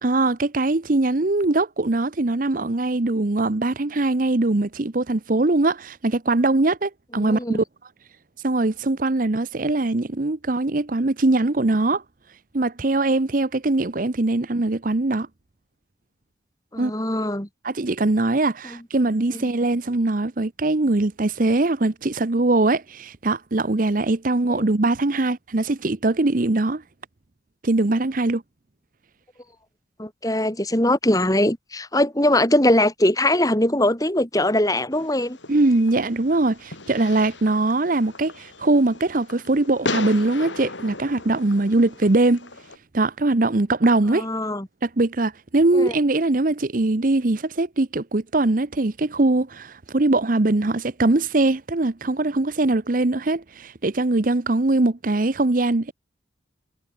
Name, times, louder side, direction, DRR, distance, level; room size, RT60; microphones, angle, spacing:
voice 1, 0.0-7.6 8.4-12.0 12.5-15.3 16.8-16.9 17.6-26.8 27.6-28.4 35.5-42.5 42.9-44.3 44.8-55.9, right 2 dB, 45° right, 0.8 m, -21 dB
voice 2, 7.2-7.6 16.7-17.5 24.5-24.7 30.0-35.4 44.1-44.7 45.7-45.9, left 1 dB, 20° left, 3.8 m, -21 dB
Fireworks, 34.9-42.8, left 3 dB, 85° left, 6.2 m, -36 dB
head